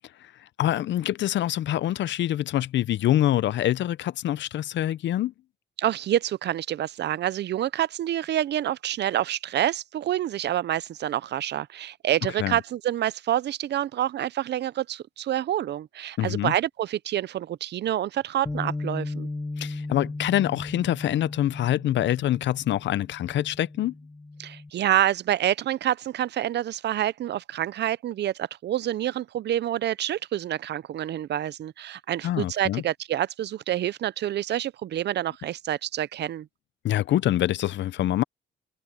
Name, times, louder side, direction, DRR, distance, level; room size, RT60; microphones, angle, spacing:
voice 1, 0.6-5.3 12.4-12.6 16.2-16.5 19.6-23.9 32.2-32.8 36.8-38.2, left 12 dB, 65° left, 0.6 m, -25 dB
voice 2, 5.8-19.3 24.4-36.5, right 12 dB, 60° right, 0.6 m, -27 dB
Bass guitar, 18.5-24.7, left 2 dB, 10° left, 0.5 m, -36 dB
cardioid pair, 90°, 20 cm